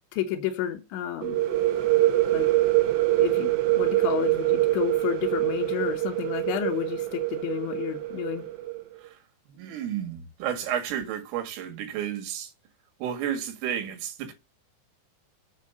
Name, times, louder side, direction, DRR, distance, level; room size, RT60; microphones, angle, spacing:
voice 1, 0.1-1.4 2.3-2.5 3.2-3.5 3.8-8.4, left 11 dB, 75° left, 3.2 m, -30 dB
sound 1, 1.2-8.8, right 16 dB, 70° right, 3.6 m, -25 dB
voice 2, 9.0-12.5 13.0-14.3, right 9 dB, 85° right, 4.7 m, -32 dB
8.0 x 7.5 x 6.8 m
omnidirectional pair, 5.7 m